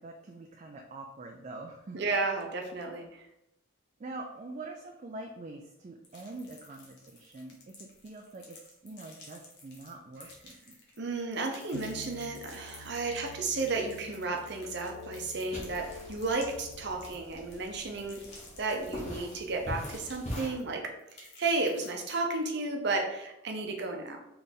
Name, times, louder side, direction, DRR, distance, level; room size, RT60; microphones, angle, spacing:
voice 1, 0.0-2.1 4.0-10.8, right 2 dB, 35° right, 2 dB, 0.3 m, -45 dB
voice 2, 1.9-3.3 11.0-18.2 18.6-24.2, right 3 dB, 55° right, 2 dB, 0.7 m, -33 dB
sound 1, 6.0-11.1 11.3-19.4 19.8-20.7 21.0-22.2, left 3 dB, 55° left, 1.1 m, -54 dB
sound 2, 11.7-17.1, left 3 dB, 90° left, 0.4 m, -49 dB
sound 3, 15.4-20.5, equal, 35° left, 1.4 m, -43 dB
3.5 x 3.3 x 4.1 m, 0.86 s
head